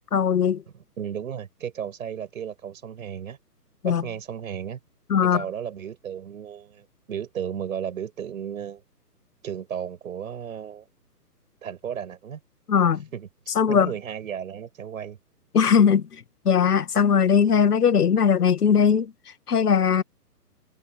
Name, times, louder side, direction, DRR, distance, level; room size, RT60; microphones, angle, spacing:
voice 1, 0.1-0.6 3.8-4.0 5.1-5.4 12.7-13.1 13.5-13.9 15.5-19.1 19.5-20.0, left 7 dB, 70° left, 1.8 m, -20 dB
voice 2, 1.0-3.4 3.8-4.8 5.3-8.8 9.4-10.9 11.6-12.4 13.1-13.3 13.7-15.2, right 8 dB, 55° right, 6.2 m, -34 dB
hypercardioid pair, 145°, 48 cm